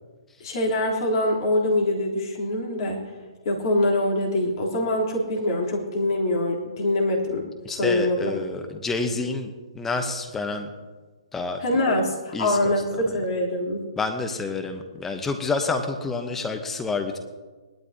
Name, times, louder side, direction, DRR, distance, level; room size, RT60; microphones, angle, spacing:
voice 1, 0.4-3.0 3.5-8.2 11.6-13.8, left 1 dB, 45° left, -2 dB, 3.6 m, -24 dB
voice 2, 7.6-10.7 11.3-11.6 12.3-13.1 14.0-17.2, left 3 dB, 10° left, 5 dB, 1.0 m, -29 dB
19.0 x 12.5 x 2.9 m, 1.3 s
figure-of-eight pair, 125°, 3 cm